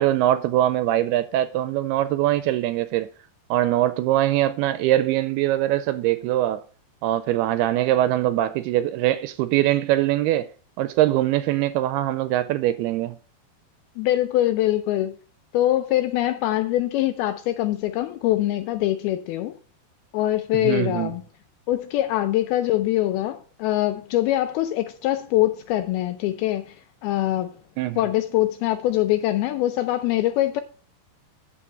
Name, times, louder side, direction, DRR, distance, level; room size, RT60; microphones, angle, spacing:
voice 1, 0.0-3.1 3.5-6.6 7.0-10.5 10.8-13.2 20.6-21.1 27.8-28.0, right 14 dB, 85° right, 2.3 m, -22 dB
voice 2, 14.0-15.1 15.5-19.5 20.1-21.2 21.7-27.6 28.0-30.6, left 14 dB, 80° left, 2.3 m, -23 dB
8.6 x 7.6 x 4.5 m
omnidirectional pair, 4.9 m